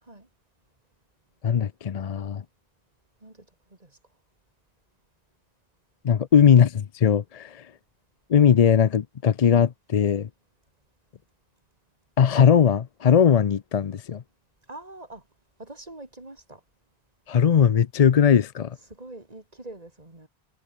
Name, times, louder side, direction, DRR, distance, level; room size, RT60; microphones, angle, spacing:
voice 1, 1.4-2.4 6.0-7.7 8.3-10.3 12.2-14.2 17.3-18.8, left 7 dB, 45° left, 0.6 m, -19 dB
voice 2, 14.7-15.2 15.6-16.6 18.9-20.3, right 2 dB, 35° right, 3.3 m, -43 dB
omnidirectional pair, 1.1 m